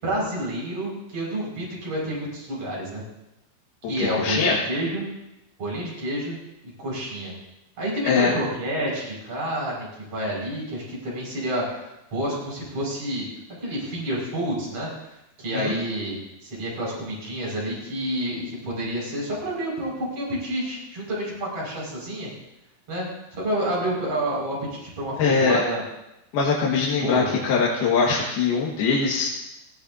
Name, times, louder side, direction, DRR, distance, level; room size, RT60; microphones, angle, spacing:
voice 1, 0.0-3.0 3.9-5.0 5.6-6.4 6.6-7.3 7.8-13.2 13.6-15.1 15.4-16.2 16.4-22.3 22.9-23.1 23.3-25.8 27.0-27.4, right 1 dB, 35° right, -4 dB, 6.4 m, -29 dB
voice 2, 4.2-4.6 8.0-8.3 15.5-15.7 25.2-25.6 26.3-29.3, left 5 dB, 70° left, -4 dB, 3.4 m, -22 dB
20.0 x 16.5 x 2.7 m, 0.91 s
omnidirectional pair, 4.7 m